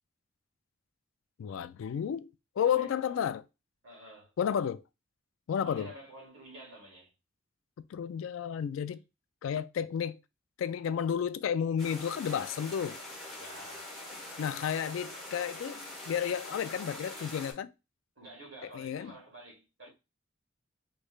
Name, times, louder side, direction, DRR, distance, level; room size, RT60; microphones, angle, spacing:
voice 1, 1.4-2.3 2.6-3.4 4.4-4.8 5.5-5.9 7.9-9.0 9.4-10.2 10.6-13.0 14.4-17.7 18.7-19.1, left 8 dB, 80° left, 0.3 m, -32 dB
voice 2, 2.6-3.3 3.8-4.3 5.6-7.1 13.4-14.0 14.9-15.0 18.2-19.9, right 1 dB, 70° right, 1.8 m, -50 dB
sound 1, 11.8-17.5, left 1 dB, ahead, 1.3 m, -44 dB
3.2 x 3.2 x 2.3 m
head